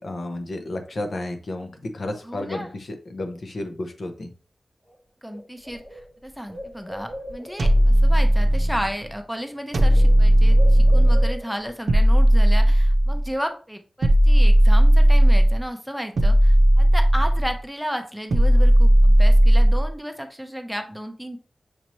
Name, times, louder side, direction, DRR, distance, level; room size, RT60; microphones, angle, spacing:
voice 1, 0.0-4.3, left 1 dB, 65° left, 6 dB, 0.8 m, -32 dB
voice 2, 2.2-2.7 5.2-21.4, equal, ahead, 6 dB, 0.6 m, -33 dB
Bird, 4.9-5.0 5.3-7.8 8.8-9.1 9.3-11.8, left 1 dB, 40° left, 1.2 m, -40 dB
sound 1, 7.6-8.9 9.7-11.4 11.9-13.3 14.0-15.6 16.2-17.6 18.3-19.9, equal, 75° right, 0.6 m, -15 dB
6.1 x 2.9 x 3.0 m, 0.37 s
wide cardioid pair, 85°, 0 cm